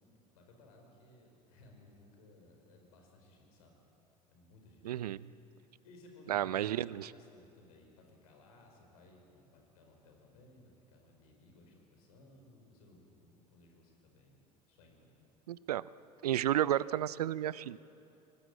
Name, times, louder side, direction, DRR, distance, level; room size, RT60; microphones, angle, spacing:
voice 1, 0.3-3.7 4.3-5.1 5.6-6.9 7.1-14.4 14.7-15.1, left 2 dB, 65° left, 2 dB, 4.9 m, -60 dB
voice 2, 4.8-5.2 6.3-7.1 15.5-15.8 16.2-17.8, right 12 dB, 70° right, 20 dB, 0.5 m, -32 dB
24.0 x 19.0 x 8.9 m, 2.7 s
figure-of-eight pair, 70°, 20 cm